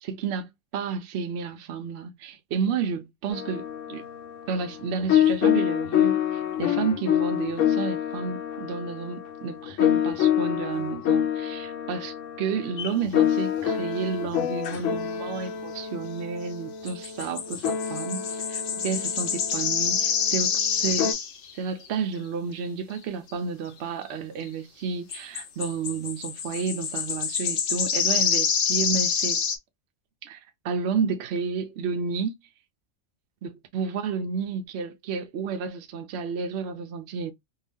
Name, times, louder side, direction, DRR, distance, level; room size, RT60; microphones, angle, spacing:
voice 1, 0.0-4.0 4.5-21.1 21.5-29.4 30.2-30.4 30.6-32.3 33.4-37.3, right 5 dB, 65° right, 0.8 m, -31 dB
sound 1, 3.3-21.1, left 10 dB, 75° left, 1.0 m, -27 dB
sound 2, 12.8-13.0 16.9-21.5 21.8-21.9 23.0-23.1 24.5-24.6 25.1-29.6, left 7 dB, 55° left, 0.7 m, -27 dB
2.7 x 2.3 x 3.4 m
omnidirectional pair, 1.3 m